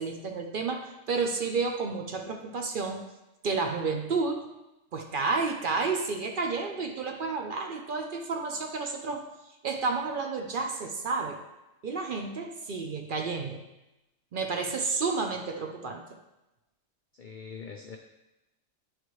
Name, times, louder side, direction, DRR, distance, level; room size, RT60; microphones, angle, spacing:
voice 1, 0.0-3.1 3.4-4.5 4.9-9.3 9.6-11.4 11.8-13.6 14.3-16.2, right 4 dB, 55° right, 4 dB, 0.6 m, -31 dB
voice 2, 17.1-18.0, left 6 dB, 85° left, 3 dB, 0.4 m, -43 dB
9.8 x 3.3 x 3.1 m, 0.97 s
omnidirectional pair, 1.4 m